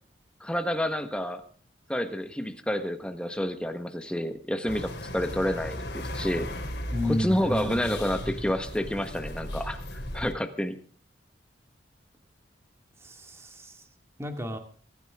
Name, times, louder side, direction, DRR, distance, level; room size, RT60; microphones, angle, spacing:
voice 1, 0.4-1.4 1.9-5.8 6.1-6.5 7.0-10.8, equal, 5° left, 7 dB, 1.4 m, -29 dB
sound 1, 4.7-10.3, left 1 dB, 65° left, 3.7 m, -36 dB
voice 2, 6.9-7.8 13.0-13.7 14.2-14.6, left 1 dB, 15° right, 4 dB, 2.3 m, -31 dB
24.0 x 13.5 x 3.7 m, 0.41 s
head